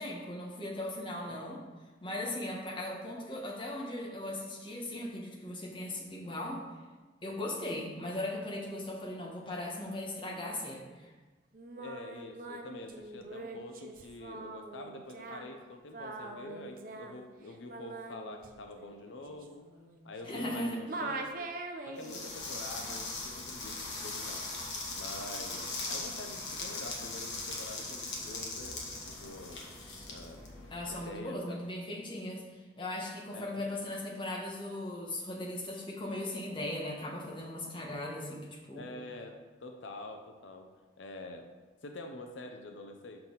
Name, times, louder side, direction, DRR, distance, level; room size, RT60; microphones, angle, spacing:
voice 1, 0.0-1.6 2.0-6.6 7.2-11.1 20.3-20.8 30.7-32.4 32.8-38.9, left 1 dB, 25° left, -3 dB, 1.2 m, -38 dB
Singing, 11.5-20.6 20.9-22.3, right 2 dB, 50° right, 0.6 m, -43 dB
voice 2, 11.8-19.7 20.0-21.6 21.9-24.4 24.9-29.6 30.1-31.6 33.3-33.7 38.7-40.7 41.0-41.5 41.8-43.2, left 2 dB, 90° left, 5 dB, 0.7 m, -46 dB
sound 1, 22.0-31.0, left 3 dB, 70° left, 1.4 m, -40 dB
6.7 x 5.6 x 4.0 m, 1.3 s
head